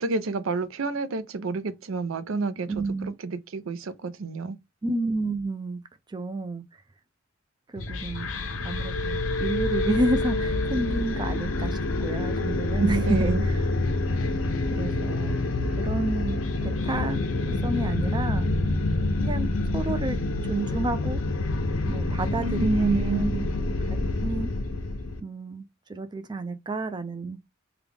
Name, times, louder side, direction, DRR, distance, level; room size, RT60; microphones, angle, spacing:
voice 1, 0.0-2.8 3.2-4.6 12.7-13.4 22.4-23.4, right 3 dB, 80° right, 0.5 m, -29 dB
voice 2, 2.7-3.2 4.8-5.8 6.1-6.6 7.7-8.3 8.6-13.6 14.7-15.4 15.8-16.4 16.6-17.2 17.6-18.5 19.2-20.2 20.5-21.2 21.8-23.4 24.2-24.5 25.2-27.4, right 2 dB, 20° right, 0.4 m, -30 dB
sound 1, 7.8-25.2, left 2 dB, 90° left, 0.6 m, -27 dB
3.3 x 2.3 x 3.5 m
head